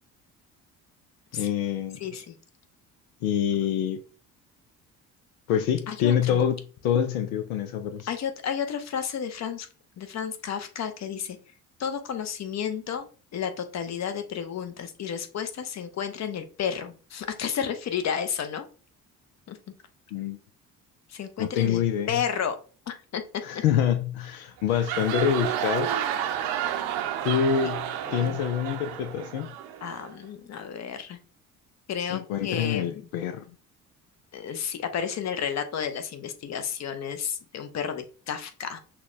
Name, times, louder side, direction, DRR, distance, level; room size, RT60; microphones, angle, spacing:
voice 1, 1.3-2.0 3.2-4.0 5.5-6.6 6.8-8.1 20.1-20.4 21.4-22.1 23.4-25.9 27.2-29.5 32.1-33.4, left 9 dB, 70° left, 0.6 m, -26 dB
voice 2, 2.0-2.3 5.9-6.4 8.1-9.7 10.0-11.4 11.8-18.7 19.5-19.6 21.1-22.6 22.9-23.2 23.5-23.6 27.6-27.7 28.0-28.4 29.8-31.2 31.9-33.1 34.3-38.8, left 8 dB, 40° left, 0.9 m, -32 dB
sound 1, 24.6-30.2, right 10 dB, 65° right, 0.7 m, -31 dB
5.9 x 2.2 x 3.2 m
figure-of-eight pair, 50°, 44 cm